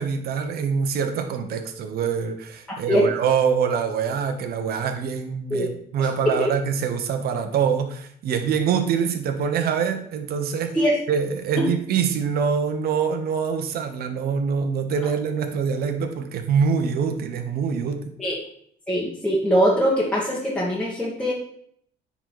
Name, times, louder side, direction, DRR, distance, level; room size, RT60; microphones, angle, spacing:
voice 1, 0.0-10.8 11.1-18.0, right 6 dB, 65° right, 7 dB, 1.2 m, -24 dB
voice 2, 6.0-6.5 10.7-10.9 18.2-18.3 18.9-21.3, equal, 5° left, -5 dB, 1.8 m, -22 dB
9.6 x 4.1 x 4.9 m, 0.65 s
cardioid pair, 110°, 17 cm